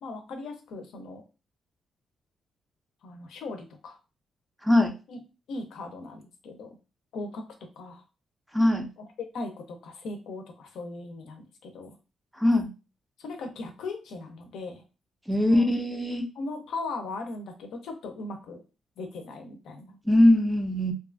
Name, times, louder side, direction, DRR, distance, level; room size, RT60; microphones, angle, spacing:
voice 1, 0.0-1.2 3.0-4.0 5.1-5.2 5.5-6.8 7.1-7.4 7.8-8.0 9.0-12.0 13.2-14.8 15.4-15.7 16.3-18.6 19.0-20.0, left 3 dB, 80° left, 5 dB, 0.6 m, -38 dB
voice 2, 8.5-8.9 12.4-12.7 15.3-16.3 20.1-20.9, left 1 dB, 5° right, 4 dB, 0.3 m, -21 dB
2.6 x 2.3 x 2.4 m, 0.31 s
cardioid pair, 145°, 0 cm